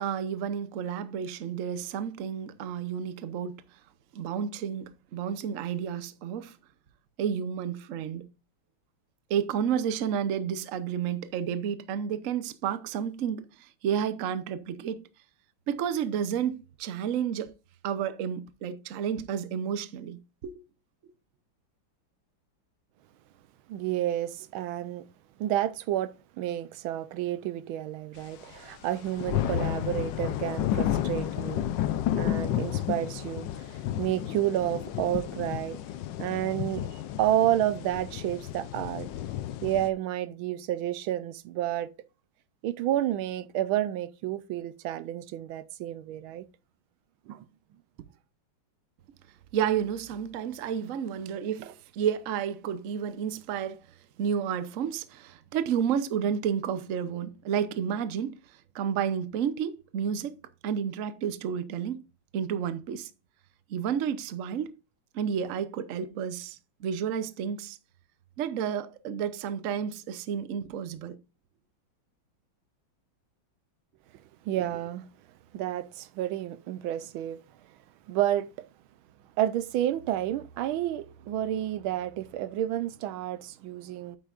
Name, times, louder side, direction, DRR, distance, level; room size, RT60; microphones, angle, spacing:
voice 1, 0.0-3.6 4.1-6.6 7.2-8.3 9.3-15.0 15.7-17.5 17.8-20.5 49.5-53.8 54.2-62.0 62.3-63.1 63.7-64.8 65.1-67.8 68.4-71.2, right 8 dB, 60° right, 0.9 m, -31 dB
voice 2, 23.7-25.0 25.4-35.8 36.2-39.1 39.6-41.9 42.6-46.5 47.3-47.4 74.4-75.1 75.5-77.4 78.1-78.5 79.4-84.2, right 12 dB, 90° right, 1.5 m, -30 dB
sound 1, 28.6-28.7 28.8-39.9, left 11 dB, 70° left, 1.3 m, -31 dB
9.1 x 7.9 x 2.5 m
omnidirectional pair, 2.2 m